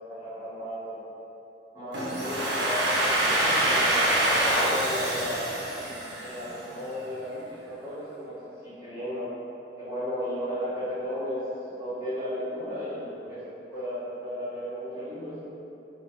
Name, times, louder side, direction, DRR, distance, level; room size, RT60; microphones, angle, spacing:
voice 1, 0.1-1.0 1.7-2.9 3.2-5.5 6.1-8.4 8.6-9.3 9.8-13.4 13.7-15.3, equal, 15° right, -15 dB, 1.4 m, -35 dB
Domestic sounds home sounds, 1.9-6.7, right 1 dB, 75° right, 0.6 m, -25 dB
3.1 x 2.2 x 3.2 m, 2.9 s
head